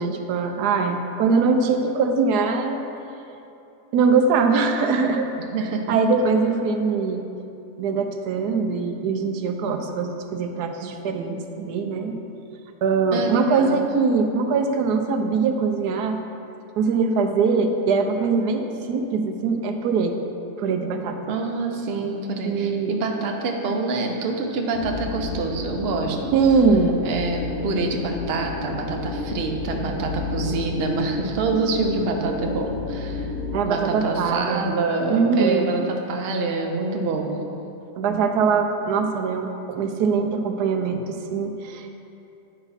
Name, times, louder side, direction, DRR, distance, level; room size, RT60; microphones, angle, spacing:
voice 1, 0.0-2.8 3.9-5.3 5.9-7.2 7.8-12.2 12.8-16.2 16.8-20.2 20.6-21.2 22.0-22.1 22.4-22.9 26.3-27.0 33.5-34.6 35.1-35.9 38.0-42.0, right 4 dB, 75° right, 5 dB, 1.2 m, -22 dB
voice 2, 5.5-5.9 13.1-13.9 21.3-26.2 27.0-33.3 33.7-37.4, right 3 dB, 50° right, 2 dB, 0.8 m, -26 dB
sound 1, 24.7-33.6, left 3 dB, 55° left, 1.3 m, -31 dB
9.1 x 5.5 x 4.0 m, 2.8 s
omnidirectional pair, 1.7 m